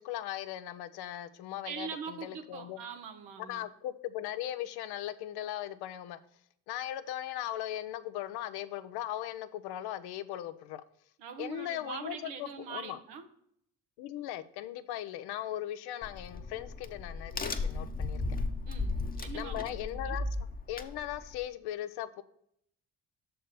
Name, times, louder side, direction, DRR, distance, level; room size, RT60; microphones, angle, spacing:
voice 1, 0.0-2.8 3.5-6.2 6.7-10.8 11.4-13.0 14.0-18.2 19.3-20.3 20.7-22.2, left 12 dB, 70° left, 11 dB, 0.7 m, -38 dB
voice 2, 1.6-3.6 11.2-13.2 18.7-20.2, right 6 dB, 80° right, 6 dB, 1.1 m, -43 dB
Crack, 16.0-21.5, left 3 dB, 20° left, 0.9 m, -36 dB
6.4 x 4.6 x 6.7 m, 0.70 s
hypercardioid pair, 55°, 40 cm